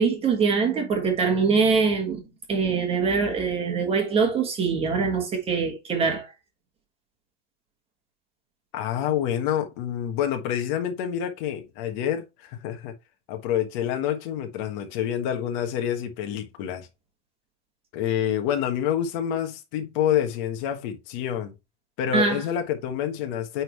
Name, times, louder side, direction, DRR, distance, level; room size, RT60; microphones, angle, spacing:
voice 1, 0.0-2.2 2.5-6.3 22.1-22.4, right 5 dB, 15° right, 1.5 m, -23 dB
voice 2, 8.7-12.9 13.3-16.9 17.9-21.5 22.0-23.6, left 10 dB, 40° left, 1.5 m, -27 dB
8.9 x 3.8 x 3.0 m
supercardioid pair, 170°, 36 cm